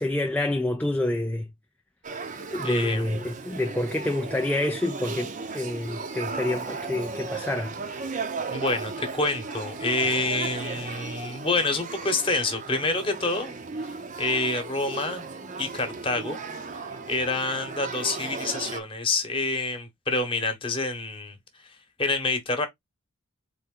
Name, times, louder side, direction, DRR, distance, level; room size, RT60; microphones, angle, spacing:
voice 1, 0.0-1.5 2.5-7.8, left 1 dB, 5° left, 0.3 m, -27 dB
Male speech man speaking / Child speech kid speaking / Conversation, 2.0-18.8, right 4 dB, 35° right, 0.7 m, -35 dB
voice 2, 2.6-3.0 8.5-13.6 14.2-15.2 15.6-16.4 17.1-21.4 22.0-22.7, left 3 dB, 25° left, 1.1 m, -27 dB
4.1 x 3.4 x 3.7 m
head